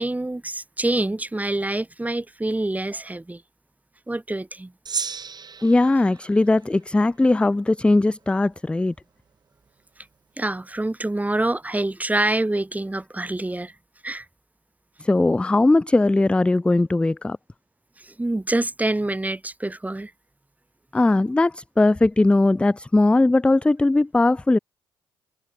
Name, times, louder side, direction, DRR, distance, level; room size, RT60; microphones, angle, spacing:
voice 1, 0.0-3.4 4.1-4.7 10.4-13.7 14.0-14.3 18.0-20.1, right 2 dB, 15° right, 4.3 m, -26 dB
Gong, 4.9-7.5, right 6 dB, 40° right, 1.4 m, -35 dB
voice 2, 5.6-8.9 15.0-17.4 20.9-24.6, left 2 dB, 10° left, 0.3 m, -19 dB
hypercardioid pair, 55°, 10 cm